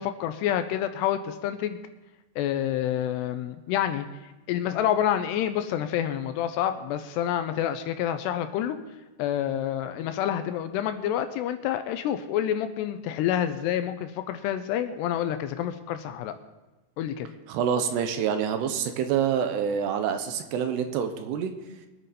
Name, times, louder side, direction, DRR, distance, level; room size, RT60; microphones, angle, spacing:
voice 1, 0.0-1.8 2.4-4.1 4.5-8.8 9.2-16.3 17.0-17.3, left 10 dB, 80° left, 9 dB, 2.6 m, -28 dB
voice 2, 17.5-21.5, right 8 dB, 75° right, 7 dB, 2.8 m, -27 dB
23.0 x 9.2 x 4.2 m, 1.1 s
omnidirectional pair, 5.1 m